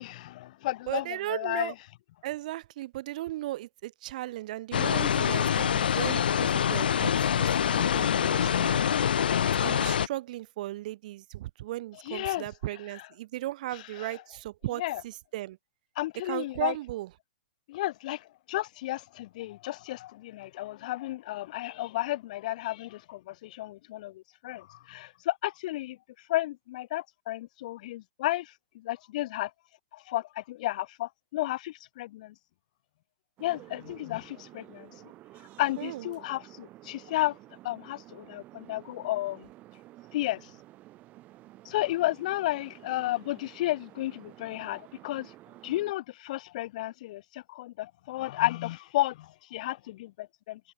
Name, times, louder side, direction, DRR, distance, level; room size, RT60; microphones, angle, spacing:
voice 1, 0.0-1.7 12.1-12.4 14.0-14.1 14.8-15.0 16.0-16.7 17.7-26.0 26.3-28.5 28.8-29.5 29.9-32.3 33.4-34.9 35.6-37.3 37.6-39.5 40.1-40.4 41.6-45.3 45.6-50.6, left 16 dB, 50° left, 0.8 m, -32 dB
voice 2, 0.9-1.7 2.2-9.0 9.6-15.6 16.2-17.1 35.8-36.1, right 15 dB, 55° right, 4.8 m, -36 dB
sound 1, 4.7-10.1, left 8 dB, 75° left, 1.1 m, -25 dB
sound 2, 33.4-45.9, right 16 dB, 30° right, 6.6 m, -52 dB
open air
hypercardioid pair, 130°, 5 cm